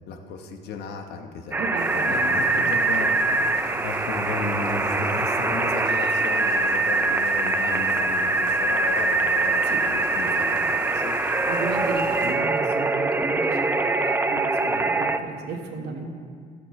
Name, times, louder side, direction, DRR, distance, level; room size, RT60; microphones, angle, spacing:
voice 1, 0.1-3.1 3.8-11.1, left 4 dB, 75° left, 5 dB, 1.1 m, -34 dB
sound 1, 1.5-15.2, right 3 dB, 10° right, 0.4 m, -23 dB
voice 2, 1.6-2.7 3.3-3.4 9.6-9.8 11.5-16.1, right 4 dB, 80° right, 2 dB, 1.5 m, -34 dB
sound 2, 1.8-12.3, left 2 dB, 50° left, 2.0 m, -43 dB
sound 3, 2.4-6.5, left 2 dB, 35° left, 2.7 m, -44 dB
16.5 x 7.7 x 3.2 m, 2.1 s
cardioid pair, 110°, 17 cm